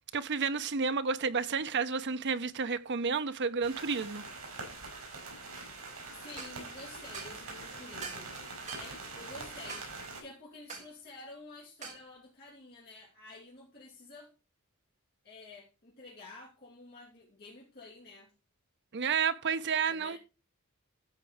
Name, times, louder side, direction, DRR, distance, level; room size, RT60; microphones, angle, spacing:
voice 1, 0.1-4.2 18.9-20.2, right 5 dB, 55° right, 0.7 m, -31 dB
sound 1, 3.6-10.2, right 3 dB, 75° right, 6.4 m, -44 dB
voice 2, 6.2-8.3 8.7-9.9 10.2-14.3 15.2-18.3 19.9-20.2, left 2 dB, 45° left, 2.9 m, -50 dB
sound 2, 6.4-6.5 7.1-7.4 8.0-8.3 8.7-8.9 9.7-9.9 10.7-10.9 11.8-12.0, right 5 dB, 35° right, 4.0 m, -43 dB
14.0 x 4.7 x 4.9 m
head